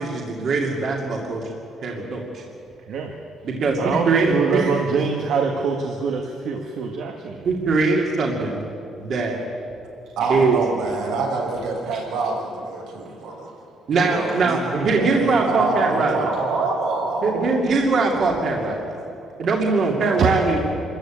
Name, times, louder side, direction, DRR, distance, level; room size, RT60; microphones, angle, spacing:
voice 1, 0.0-1.5 1.8-2.4 3.4-4.6 7.4-8.6 9.0-9.4 10.3-10.6 13.9-16.3 17.2-19.0 19.4-20.6, right 3 dB, 40° right, 0 dB, 2.4 m, -21 dB
voice 2, 3.8-7.4 11.9-12.0 20.2-20.3, right 5 dB, 60° right, 2 dB, 1.7 m, -24 dB
voice 3, 10.2-13.5 14.0-17.5 18.1-18.4 19.6-20.6, right 3 dB, 85° right, -1 dB, 5.8 m, -26 dB
26.5 x 14.5 x 8.9 m, 2.7 s
cardioid pair, 180°, 0 cm